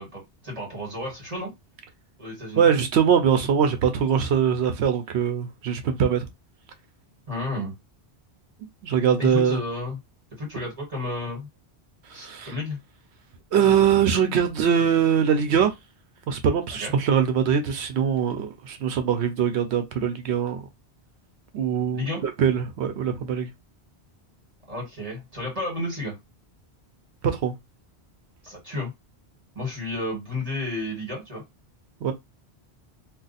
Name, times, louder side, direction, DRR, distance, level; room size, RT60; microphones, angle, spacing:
voice 1, 0.0-1.5 2.2-2.6 7.3-7.7 9.2-10.0 10.4-11.5 12.1-12.8 16.8-16.9 21.9-22.2 24.7-26.2 28.4-28.9 29.5-31.4, left 2 dB, 35° right, 1.6 m, -32 dB
voice 2, 2.6-6.3 8.8-9.6 12.1-12.5 13.5-15.7 16.3-20.6 21.5-23.5 27.3-27.5 32.0-32.1, right 7 dB, 80° right, 0.9 m, -22 dB
2.4 x 2.4 x 3.9 m
omnidirectional pair, 1.1 m